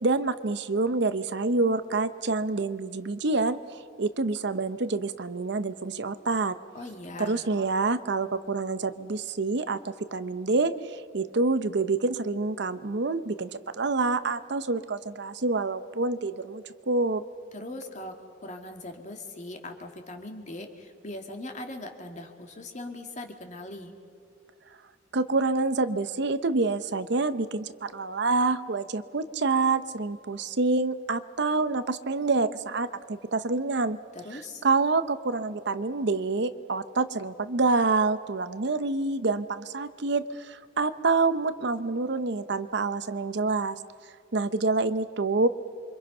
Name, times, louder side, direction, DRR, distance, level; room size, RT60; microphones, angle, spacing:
voice 1, 0.0-3.6 4.0-6.6 7.2-13.5 13.8-17.2 25.1-34.0 34.3-43.8 44.3-45.5, right 3 dB, 65° right, 12 dB, 0.8 m, -27 dB
voice 2, 6.7-7.5 17.5-18.2 18.4-23.9 34.1-34.6, left 2 dB, 40° left, 4 dB, 2.3 m, -40 dB
28.5 x 25.0 x 5.5 m, 2.3 s
head